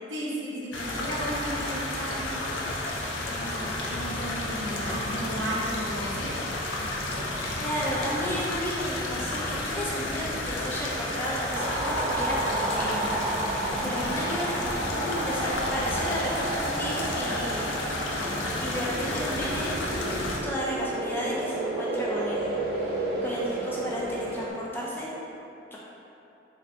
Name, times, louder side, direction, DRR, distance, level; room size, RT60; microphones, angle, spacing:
voice 1, 0.1-2.8 3.1-6.4, right 1 dB, 85° right, -5 dB, 0.7 m, -34 dB
sound 1, 0.7-20.4, left 2 dB, 90° left, 0.5 m, -32 dB
voice 2, 7.6-13.5 13.8-17.9 18.6-20.0 20.4-25.1 25.7-25.8, equal, 10° left, -6 dB, 0.5 m, -33 dB
sound 2, 11.5-24.5, right 2 dB, 55° right, 0.4 m, -32 dB
3.9 x 2.5 x 3.3 m, 2.8 s
head